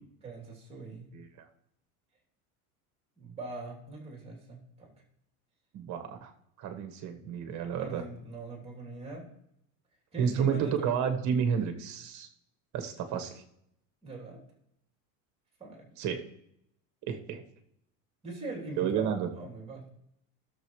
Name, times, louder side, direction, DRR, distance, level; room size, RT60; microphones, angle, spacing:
voice 1, 0.2-1.1 3.2-4.9 7.8-9.3 10.1-10.9 14.0-14.4 15.6-15.9 18.2-19.9, right 3 dB, 15° right, -1 dB, 3.2 m, -42 dB
voice 2, 5.7-6.3 6.6-8.0 10.2-12.3 12.7-13.4 16.0-16.2 17.1-17.4 18.8-19.3, right 7 dB, 45° right, 6 dB, 1.5 m, -31 dB
17.0 x 7.0 x 3.2 m, 0.76 s
cardioid pair, 150°, 40 cm